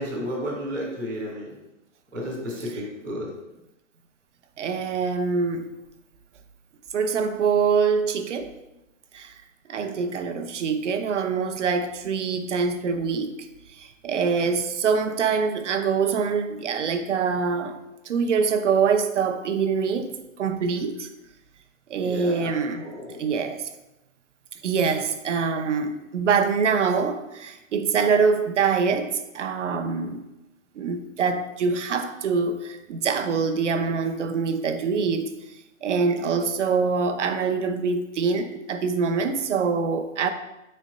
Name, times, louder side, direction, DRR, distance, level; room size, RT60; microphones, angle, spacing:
voice 1, 0.0-1.5 2.1-3.3 9.7-10.3 22.0-23.2, equal, 5° right, -13 dB, 0.6 m, -33 dB
voice 2, 4.6-5.7 6.9-8.6 9.1-9.3 9.7-13.5 13.7-17.8 18.1-21.1 21.9-22.9 23.2-23.7 24.6-30.2 30.8-35.3 35.8-40.3, right 5 dB, 60° right, 7 dB, 0.7 m, -24 dB
5.3 x 4.4 x 5.1 m, 0.95 s
hypercardioid pair, 170°, 40 cm